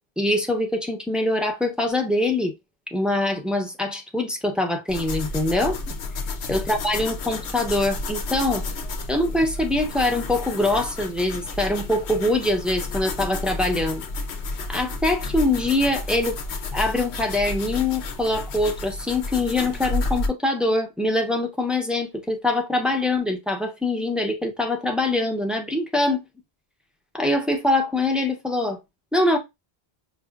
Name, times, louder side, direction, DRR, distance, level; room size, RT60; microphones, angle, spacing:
voice 1, 0.2-2.5 2.9-5.9 6.5-8.6 9.1-14.1 14.7-16.4 16.7-26.2 27.1-28.8 29.1-29.4, left 2 dB, ahead, 0.6 m, -23 dB
sound 1, 4.9-20.3, left 3 dB, 90° left, 1.0 m, -31 dB
5.5 x 2.7 x 2.4 m
omnidirectional pair, 1.1 m